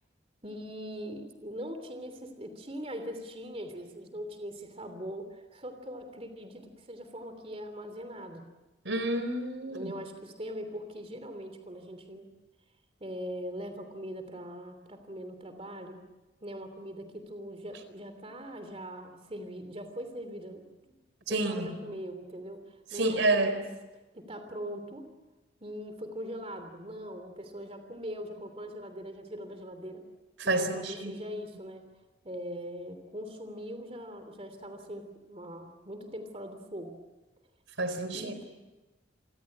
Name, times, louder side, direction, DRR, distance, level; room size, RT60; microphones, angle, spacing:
voice 1, 0.4-8.4 9.7-12.3 13.0-16.0 16.4-20.9 21.3-23.5 24.1-25.1 25.6-30.0 30.4-31.8 32.2-36.9 38.1-38.4, equal, 30° right, 8 dB, 3.1 m, -41 dB
voice 2, 8.8-9.9 21.3-21.8 22.9-23.6 30.4-31.1 37.8-38.3, right 2 dB, 80° right, 10 dB, 4.1 m, -29 dB
29.0 x 24.0 x 8.7 m, 1.1 s
head